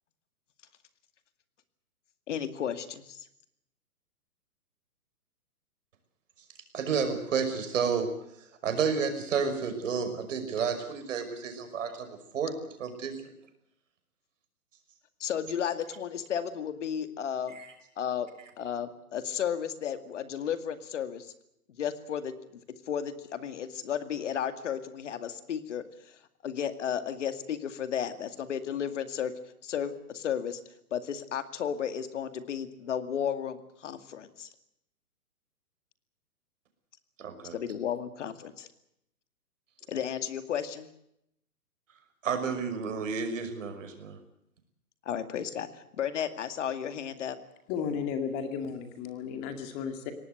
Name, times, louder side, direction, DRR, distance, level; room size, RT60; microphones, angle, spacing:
voice 1, 2.3-3.3 15.2-17.6 18.0-18.3 18.6-21.3 21.8-22.6 22.9-26.2 26.4-29.3 29.6-30.6 30.9-34.5 37.5-38.7 39.9-40.9 45.1-47.4, left 8 dB, 50° left, 10 dB, 2.3 m, -33 dB
voice 2, 6.7-8.1 8.6-12.5 12.8-13.1 17.5-17.7 37.2-37.6 42.2-44.2, right 6 dB, 55° right, 8 dB, 5.7 m, -31 dB
voice 3, 47.7-50.1, left 6 dB, 20° left, 8 dB, 2.2 m, -34 dB
23.5 x 19.0 x 7.9 m, 0.78 s
hypercardioid pair, 160°, 46 cm